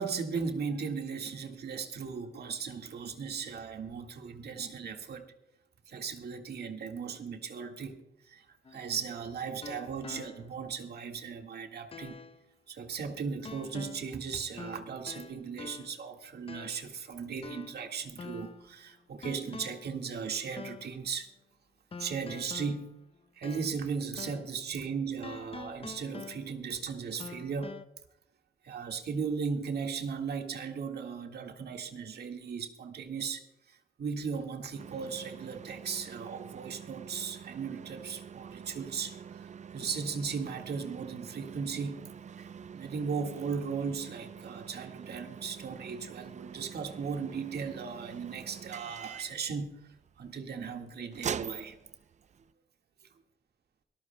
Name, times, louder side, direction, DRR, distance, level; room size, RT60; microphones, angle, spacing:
voice 1, 0.0-5.3 5.9-8.5 8.7-12.2 12.7-21.3 22.0-22.9 23.4-27.8 28.6-42.0 42.4-49.8 50.2-51.8, right 5 dB, 55° right, 1.8 m, -37 dB
sound 1, 8.6-10.7 11.1-11.2 11.9-12.4 13.4-14.2 14.6-16.1 16.5-16.9 17.4-18.7 19.2-20.0 20.6-21.0 21.9-23.9 24.2-24.6 25.2-26.7 27.2-27.8, left 5 dB, 30° left, 0.7 m, -46 dB
sound 2, 34.8-52.5, right 7 dB, 35° right, 0.5 m, -45 dB
24.0 x 13.5 x 2.2 m
cardioid pair, 90°, 20 cm